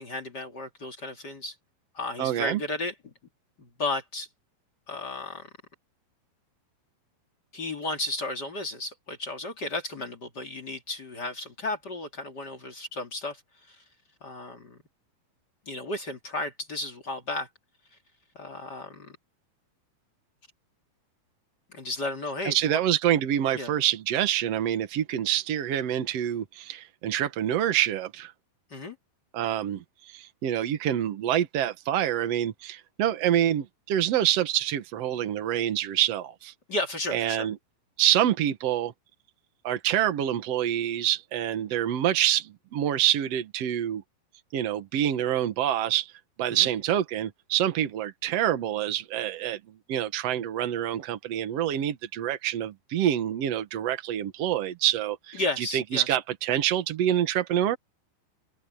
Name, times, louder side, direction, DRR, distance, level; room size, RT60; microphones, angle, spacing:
voice 1, 0.0-1.5 1.9-3.1 3.6-4.3 4.9-5.5 7.5-13.4 13.7-13.8 14.2-14.8 15.7-17.5 18.4-19.2 21.7-22.8 23.5-23.7 28.7-29.0 36.7-37.5 46.5-46.7 55.3-56.1, left 2 dB, 35° left, 2.2 m, -34 dB
voice 2, 2.2-2.6 22.4-28.3 29.3-36.5 37.1-37.6 38.0-38.9 39.6-44.0 44.5-46.1 46.4-49.6 49.9-57.8, right 11 dB, 70° right, 1.5 m, -26 dB
open air
omnidirectional pair, 4.5 m